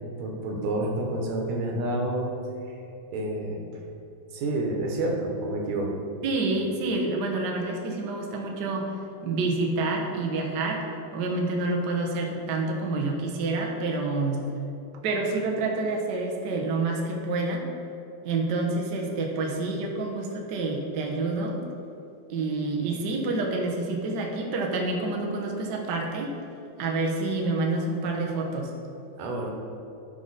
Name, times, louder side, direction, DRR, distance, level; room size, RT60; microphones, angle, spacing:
voice 1, 0.0-2.3 2.7-2.8 3.1-3.6 4.3-6.0 29.2-29.5, right 1 dB, 70° right, 0 dB, 2.4 m, -29 dB
voice 2, 6.2-8.9 9.2-10.8 11.1-14.5 15.0-17.7 18.2-21.6 22.3-26.3 26.8-28.7, right 3 dB, 90° right, 0 dB, 0.9 m, -28 dB
12.5 x 5.3 x 4.1 m, 2.8 s
omnidirectional pair, 3.6 m